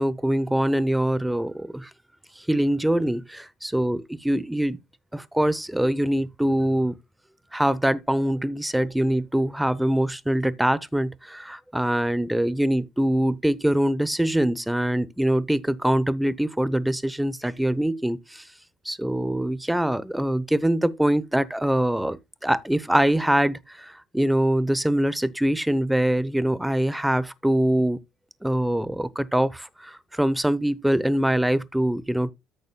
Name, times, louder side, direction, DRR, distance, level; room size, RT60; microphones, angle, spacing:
voice 1, 0.0-1.9 2.5-4.8 5.1-7.0 7.5-18.4 18.9-28.0 28.4-32.3, right 1 dB, 5° right, 0.7 m, -23 dB
14.0 x 6.6 x 2.2 m
cardioid pair, 120°, 0 cm